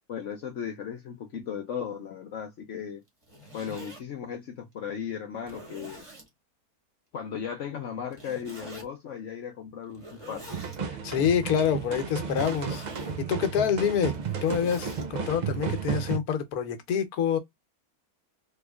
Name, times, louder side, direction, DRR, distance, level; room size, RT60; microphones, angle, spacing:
voice 1, 0.1-3.0 3.5-6.0 7.1-10.4, left 7 dB, 65° left, 0.9 m, -36 dB
Zipper (clothing), 3.1-4.0 4.7-4.8 5.4-6.3 8.1-8.9 9.9-10.8 12.2-13.2 14.0-15.1, equal, 20° right, 1.5 m, -46 dB
sound 1, 10.5-16.2, right 6 dB, 65° right, 0.4 m, -33 dB
voice 2, 10.9-12.8 13.2-14.1 14.4-17.4, left 8 dB, 85° left, 1.3 m, -27 dB
3.5 x 3.1 x 2.2 m
omnidirectional pair, 1.5 m